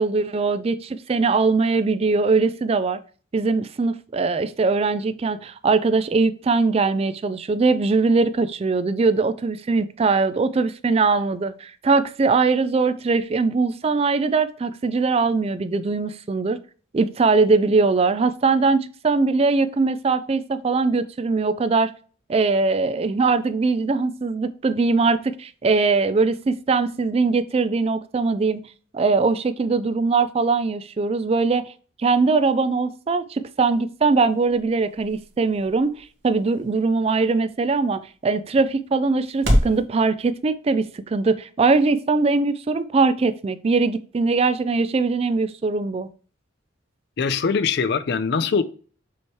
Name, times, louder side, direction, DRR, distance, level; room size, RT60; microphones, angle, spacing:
voice 1, 0.0-3.0 3.3-16.6 16.9-21.9 22.3-28.6 28.9-31.6 32.0-46.1, right 4 dB, 30° right, 13 dB, 0.3 m, -21 dB
sound 1, 33.5-39.8, equal, 65° right, 1.6 m, -30 dB
voice 2, 47.2-48.6, left 5 dB, 55° left, 13 dB, 0.5 m, -22 dB
7.0 x 3.1 x 4.6 m, 0.40 s
head